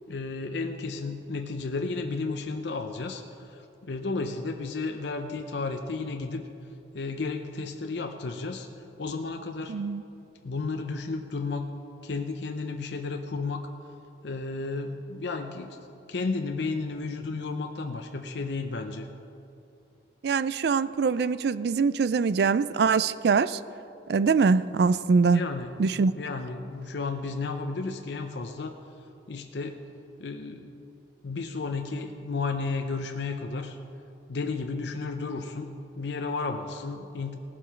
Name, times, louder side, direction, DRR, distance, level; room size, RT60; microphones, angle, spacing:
voice 1, 0.1-6.4 6.9-8.7 9.0-9.7 10.4-11.7 12.0-13.7 14.2-15.8 16.1-19.1 25.3-25.7 26.1-28.8 29.3-29.8 30.2-30.7 31.2-33.8 34.3-37.3, left 3 dB, 75° left, 5 dB, 0.6 m, -33 dB
voice 2, 9.7-10.0 20.2-23.6 24.1-25.4 25.8-26.1, right 5 dB, 65° right, 16 dB, 0.4 m, -23 dB
17.5 x 7.5 x 5.7 m, 2.7 s
head